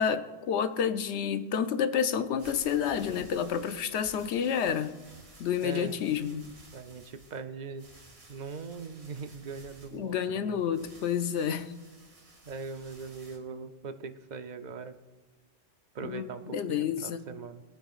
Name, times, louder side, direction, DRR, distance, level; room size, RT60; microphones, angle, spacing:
voice 1, 0.0-5.0 5.4-6.5 9.9-11.7 16.0-17.2, left 8 dB, 75° left, 10 dB, 0.9 m, -29 dB
sound 1, 2.4-13.4, right 2 dB, 65° right, 2.1 m, -55 dB
voice 2, 5.6-6.1 6.7-7.8 8.3-10.6 12.4-15.0 15.9-17.6, right 5 dB, 50° right, 9 dB, 0.6 m, -41 dB
22.0 x 9.0 x 2.4 m, 1.3 s
omnidirectional pair, 1.2 m